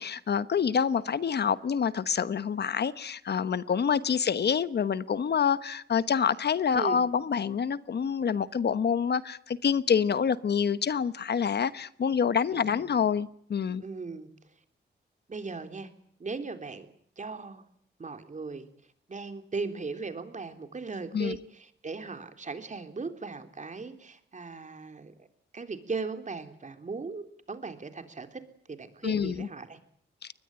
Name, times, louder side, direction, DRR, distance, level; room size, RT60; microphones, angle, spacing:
voice 1, 0.0-13.8 21.1-21.4 29.0-29.5, left 7 dB, 60° left, 15 dB, 1.1 m, -27 dB
voice 2, 12.5-12.9 13.8-14.3 15.3-15.9 16.2-16.9 17.2-17.6 18.0-18.7 19.1-25.3 25.5-28.4 28.7-29.8, right 4 dB, 40° right, 7 dB, 3.5 m, -38 dB
23.0 x 20.5 x 8.9 m, 0.64 s
cardioid pair, 85°, 19 cm